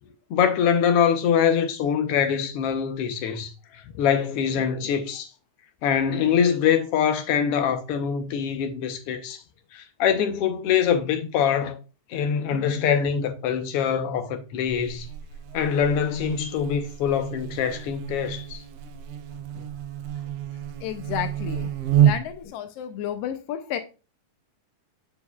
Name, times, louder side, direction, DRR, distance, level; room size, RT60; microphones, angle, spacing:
voice 1, 0.3-3.5 4.0-5.3 5.8-9.4 9.7-11.8 12.1-15.1 15.5-18.6, left 8 dB, 70° left, 1.5 m, -24 dB
voice 2, 4.5-4.9 19.6-19.7 20.8-21.7 22.0-23.8, left 10 dB, 85° left, 1.4 m, -32 dB
Buzz, 14.7-22.5, right 10 dB, 80° right, 1.4 m, -28 dB
7.0 x 6.5 x 2.3 m
omnidirectional pair, 3.3 m